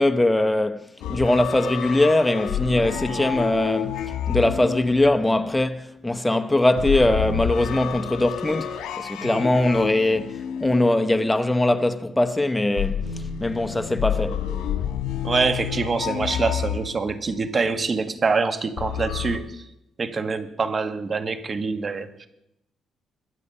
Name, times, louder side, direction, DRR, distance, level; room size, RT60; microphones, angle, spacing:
voice 1, 0.0-10.3 10.6-14.5, left 1 dB, 10° left, 0.9 m, -21 dB
sound 1, 1.0-5.6 6.8-11.5 12.8-17.4 18.8-19.4, left 9 dB, 80° left, 1.5 m, -29 dB
voice 2, 15.2-19.6 20.0-22.3, right 4 dB, 35° right, 1.3 m, -25 dB
21.5 x 8.0 x 5.5 m
cardioid pair, 90°, 0 cm